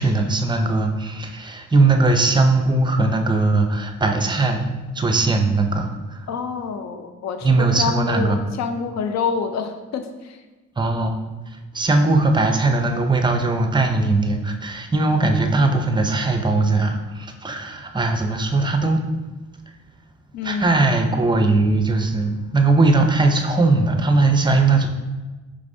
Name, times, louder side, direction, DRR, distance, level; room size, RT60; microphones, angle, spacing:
voice 1, 0.0-6.3 7.4-8.4 10.8-19.0 20.4-24.9, right 3 dB, 15° right, 5 dB, 0.5 m, -19 dB
voice 2, 6.3-10.4 20.3-20.8, left 5 dB, 65° left, 7 dB, 0.5 m, -27 dB
5.1 x 3.4 x 2.6 m, 1.2 s
cardioid pair, 90°, 30 cm